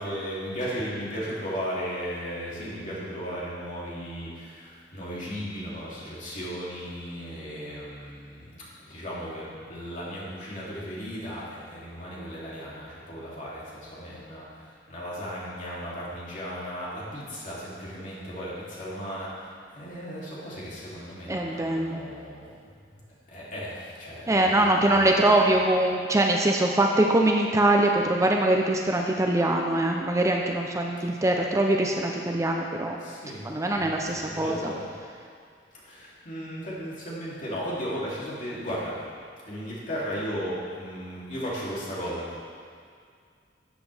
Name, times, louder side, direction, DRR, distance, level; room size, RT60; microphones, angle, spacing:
voice 1, 0.0-22.8 23.3-25.6 33.0-34.8 35.8-39.0 39.5-42.4, equal, 45° left, -7 dB, 2.9 m, -36 dB
voice 2, 21.3-22.0 24.3-33.0 33.4-34.6, right 1 dB, 15° right, 1 dB, 0.6 m, -23 dB
13.5 x 8.4 x 3.4 m, 2.2 s
head